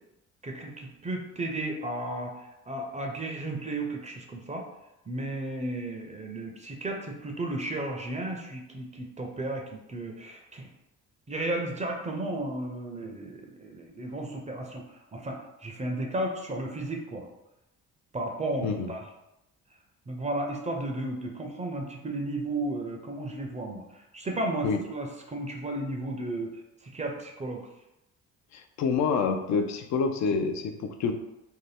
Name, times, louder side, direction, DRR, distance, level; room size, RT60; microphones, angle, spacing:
voice 1, 0.4-4.6 5.1-9.6 9.9-10.7 11.3-17.3 18.1-19.0 20.1-26.6 26.8-27.6, right 1 dB, 25° right, 1 dB, 0.5 m, -34 dB
voice 2, 18.6-18.9 24.6-24.8 28.5-31.1, left 5 dB, 65° left, 7 dB, 0.5 m, -27 dB
2.7 x 2.1 x 3.3 m, 0.89 s
cardioid pair, 90°, 30 cm